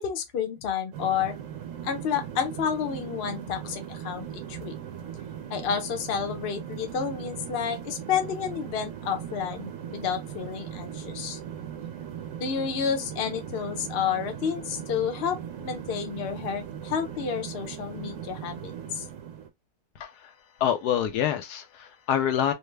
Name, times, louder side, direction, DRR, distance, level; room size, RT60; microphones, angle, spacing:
voice 1, 0.0-1.3 1.8-4.7 5.5-11.4 12.4-19.1, left 7 dB, 55° left, 0.7 m, -30 dB
sound 1, 0.9-19.5, right 9 dB, 60° right, 0.9 m, -39 dB
voice 2, 20.0-20.3 20.6-22.5, left 9 dB, 80° left, 1.1 m, -26 dB
3.2 x 2.1 x 3.2 m
omnidirectional pair, 1.7 m